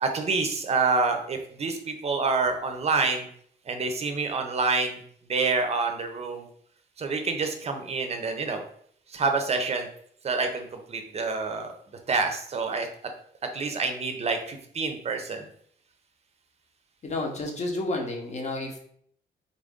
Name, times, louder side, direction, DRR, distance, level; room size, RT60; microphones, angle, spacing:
voice 1, 0.0-3.3 3.7-5.0 5.3-6.5 7.0-8.6 9.1-9.9 10.2-11.7 12.1-12.9 13.5-15.5, right 4 dB, 35° right, 5 dB, 0.6 m, -27 dB
voice 2, 17.0-18.8, left 2 dB, 35° left, 1 dB, 0.9 m, -31 dB
3.9 x 2.5 x 3.6 m, 0.62 s
cardioid pair, 135°, 20 cm